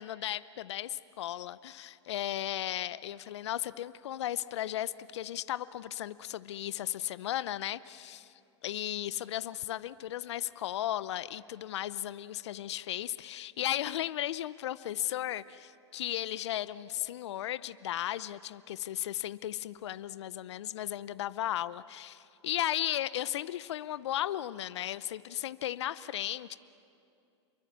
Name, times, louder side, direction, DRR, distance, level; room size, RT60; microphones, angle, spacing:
voice 1, 0.0-8.3 8.6-26.6, left 12 dB, 70° left, 16 dB, 0.7 m, -35 dB
29.0 x 23.0 x 7.4 m, 2.5 s
hypercardioid pair, 110°, 15 cm